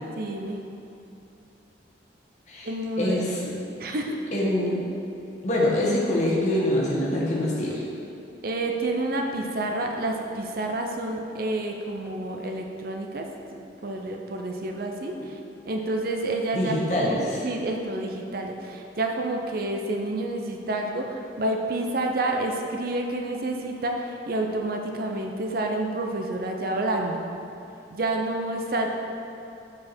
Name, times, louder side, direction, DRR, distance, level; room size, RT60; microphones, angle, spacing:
voice 1, 0.2-0.6 2.6-3.2 3.8-4.2 8.4-13.3 13.5-15.4 15.6-17.2 17.4-27.2 27.9-28.9, right 2 dB, 50° right, 2 dB, 0.5 m, -29 dB
voice 2, 3.0-3.6 4.3-4.8 5.4-7.8 16.5-17.4, left 1 dB, 40° left, -5 dB, 1.3 m, -25 dB
7.3 x 4.8 x 4.3 m, 2.9 s
head